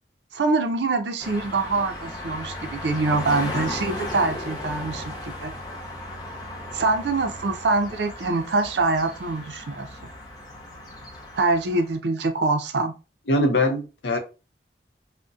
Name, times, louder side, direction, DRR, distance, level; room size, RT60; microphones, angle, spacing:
voice 1, 0.3-5.5 6.7-9.9 11.4-12.9, right 3 dB, 75° right, 0.5 m, -24 dB
sound 1, 1.2-12.0, left 1 dB, 20° left, 0.5 m, -36 dB
voice 2, 13.3-14.2, left 1 dB, 80° left, 0.6 m, -22 dB
2.6 x 2.1 x 2.3 m
head